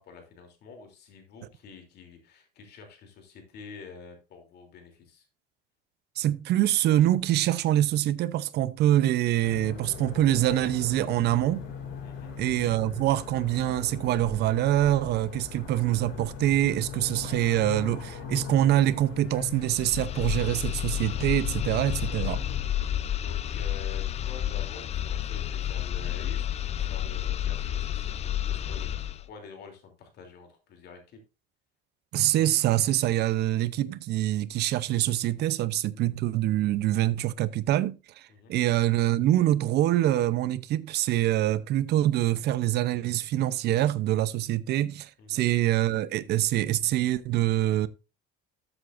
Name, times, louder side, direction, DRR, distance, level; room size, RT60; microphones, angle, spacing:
voice 1, 0.0-5.3 12.0-12.3 21.8-22.1 23.1-31.2 38.3-38.6 45.2-45.4, left 5 dB, 55° left, 3.2 m, -48 dB
voice 2, 6.2-11.7 12.4-22.4 32.1-47.9, right 13 dB, 55° right, 0.7 m, -25 dB
sound 1, 9.4-22.6, left 6 dB, 75° left, 4.0 m, -39 dB
sound 2, 19.6-29.3, left 11 dB, 35° left, 0.5 m, -31 dB
13.0 x 8.0 x 2.6 m
cardioid pair, 135°, 20 cm